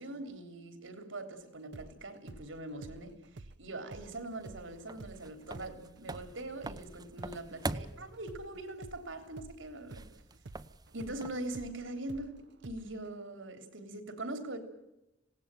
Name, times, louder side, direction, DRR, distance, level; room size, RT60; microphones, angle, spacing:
voice 1, 0.0-10.0 10.9-14.6, right 2 dB, 85° right, 3.5 m, -42 dB
sound 1, 1.7-9.6 9.9-13.1, right 2 dB, 65° right, 0.8 m, -50 dB
sound 2, 3.9-11.6, right 2 dB, 20° right, 0.8 m, -45 dB
26.5 x 18.0 x 9.0 m
head